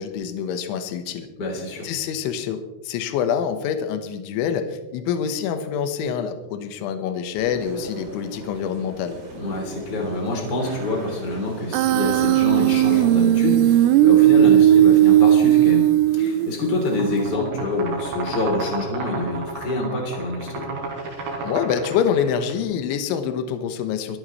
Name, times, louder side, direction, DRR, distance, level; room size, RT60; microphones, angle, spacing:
voice 1, 0.0-1.3 1.8-2.6 2.8-9.2 21.4-24.2, left 8 dB, 75° left, 7 dB, 3.3 m, -26 dB
voice 2, 1.4-1.9 9.4-15.9 16.1-20.7, left 2 dB, 25° left, 0 dB, 2.8 m, -26 dB
sound 1, 7.3-14.0, right 1 dB, 70° right, 7.8 m, -38 dB
Human voice, 11.7-16.7, right 12 dB, 90° right, 3.3 m, -16 dB
sound 2, 16.8-22.5, right 3 dB, 55° right, 5.3 m, -32 dB
26.0 x 11.0 x 3.2 m, 1.1 s
omnidirectional pair, 5.9 m